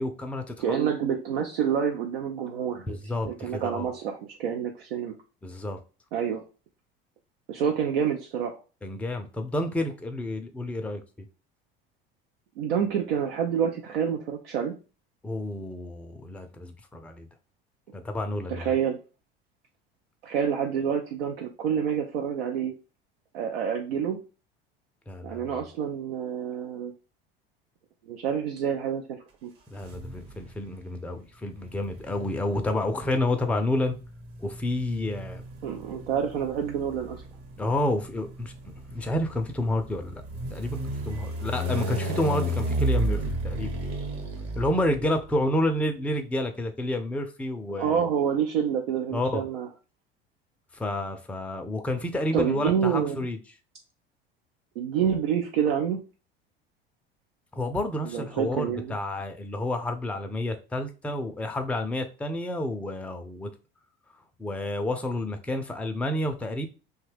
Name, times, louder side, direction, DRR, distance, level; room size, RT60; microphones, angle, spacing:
voice 1, 0.0-0.8 2.7-3.9 5.4-5.8 8.8-11.3 15.2-17.3 17.9-18.7 25.1-25.6 29.7-34.0 34.4-35.4 37.6-38.5 38.9-40.2 40.5-40.8 41.0-43.7 44.6-48.0 49.1-49.4 50.7-53.4 57.5-63.5 64.4-66.7, left 1 dB, 5° left, 0.4 m, -30 dB
voice 2, 0.6-3.0 3.2-5.1 6.1-6.4 7.5-8.6 12.6-14.8 18.5-19.0 20.2-22.7 23.3-24.2 25.2-26.9 28.0-29.5 35.6-37.2 47.7-49.7 52.3-53.3 54.8-56.0 58.0-58.9, right 8 dB, 80° right, 0.5 m, -28 dB
sound 1, 29.8-30.6 31.6-45.3, right 1 dB, 55° right, 1.0 m, -32 dB
2.6 x 2.3 x 3.3 m
hypercardioid pair, 70°, 29 cm